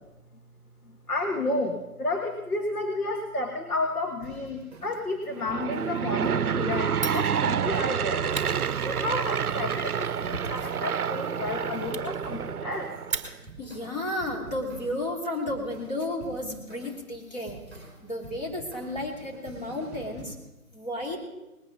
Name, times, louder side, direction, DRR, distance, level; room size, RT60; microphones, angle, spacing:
voice 1, 0.8-8.3 8.8-12.9, left 2 dB, 90° left, 3 dB, 2.0 m, -31 dB
sound 1, 4.2-20.2, right 3 dB, ahead, 4.0 m, -48 dB
Aircraft / Engine, 5.3-13.3, right 7 dB, 85° right, 0.6 m, -28 dB
Fire, 6.9-13.7, right 4 dB, 20° right, 1.2 m, -40 dB
voice 2, 13.6-20.3 20.7-21.2, left 1 dB, 30° left, -1 dB, 3.0 m, -33 dB
20.0 x 9.0 x 5.4 m, 1.0 s
figure-of-eight pair, 160°, 44 cm